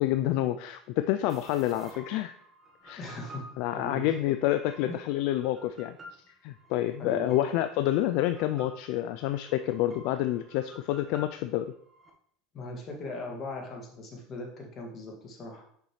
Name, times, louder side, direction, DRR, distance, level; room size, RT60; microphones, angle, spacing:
voice 1, 0.0-2.3 2.8-3.0 3.6-5.9 6.4-11.7, left 13 dB, 70° left, 10 dB, 0.3 m, -28 dB
sound 1, 1.3-12.1, equal, 25° right, 1.4 m, -52 dB
voice 2, 3.0-4.0 4.8-5.0 7.0-7.3 12.5-15.6, left 2 dB, 45° left, 1 dB, 2.0 m, -39 dB
6.7 x 5.5 x 3.2 m, 0.64 s
hypercardioid pair, 90°, 0 cm